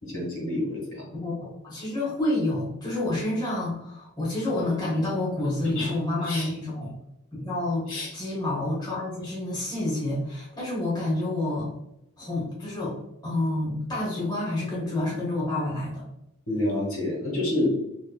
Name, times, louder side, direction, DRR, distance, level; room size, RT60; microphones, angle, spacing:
voice 1, 0.0-1.0 5.4-5.9 6.2-6.5 7.9-8.1 16.5-17.8, left 1 dB, 65° left, -3 dB, 1.4 m, -28 dB
voice 2, 1.2-6.9 7.3-7.9 8.1-11.7 12.2-12.9 13.2-16.0, left 1 dB, 20° left, -6 dB, 1.1 m, -28 dB
3.5 x 2.9 x 2.3 m, 0.84 s
head